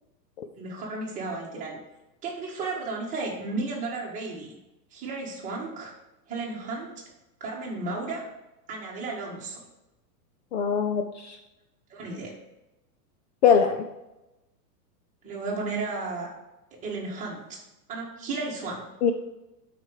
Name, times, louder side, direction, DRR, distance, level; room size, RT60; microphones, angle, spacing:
voice 1, 0.6-1.8 2.2-4.5 4.9-5.9 6.3-6.9 7.4-8.2 8.7-9.6 11.9-12.3 15.2-16.3 16.8-17.6 17.9-18.9, right 3 dB, 15° right, -4 dB, 1.9 m, -33 dB
voice 2, 10.5-11.4 13.4-13.8 19.0-19.1, left 7 dB, 45° left, 6 dB, 0.5 m, -22 dB
12.0 x 5.1 x 4.9 m, 0.98 s
supercardioid pair, 170°, 49 cm